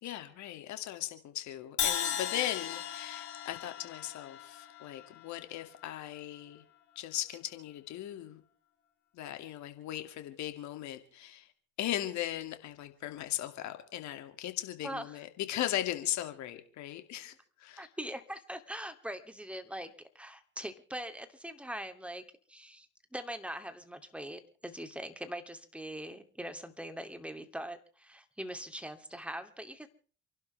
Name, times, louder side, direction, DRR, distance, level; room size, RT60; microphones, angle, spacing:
voice 1, 0.0-6.6 7.0-8.4 9.1-11.5 11.8-17.3 17.6-17.9, left 13 dB, 60° left, 2.5 m, -38 dB
Crash cymbal, 1.8-5.8, left 9 dB, 85° left, 2.8 m, -36 dB
voice 2, 14.8-15.2 17.8-22.2 22.5-22.9 23.1-29.9, right 1 dB, 5° right, 2.7 m, -42 dB
29.0 x 12.0 x 3.4 m
hypercardioid pair, 60°, 32 cm